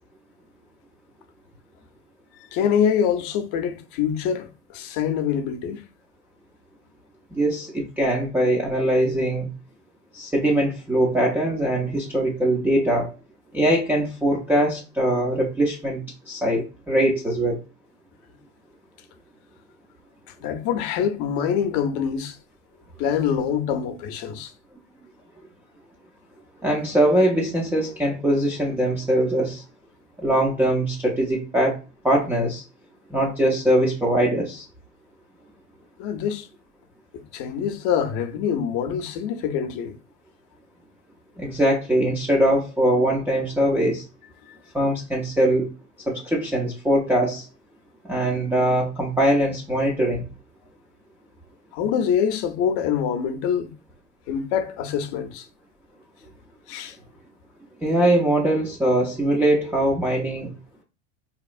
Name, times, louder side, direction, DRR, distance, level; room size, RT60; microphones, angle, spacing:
voice 1, 2.5-5.8 20.4-22.4 23.0-24.5 36.0-36.5 37.3-40.0 44.5-44.6 51.7-53.7 54.3-55.5 56.7-57.0, left 8 dB, 55° left, 0.6 m, -25 dB
voice 2, 7.3-9.5 10.1-13.1 13.5-17.6 26.6-29.6 30.2-31.8 32.0-32.6 33.1-34.6 41.4-44.0 44.7-45.7 46.1-47.5 48.0-50.2 57.8-60.5, right 1 dB, 5° right, 0.4 m, -22 dB
4.0 x 2.9 x 2.4 m
supercardioid pair, 130°, 36 cm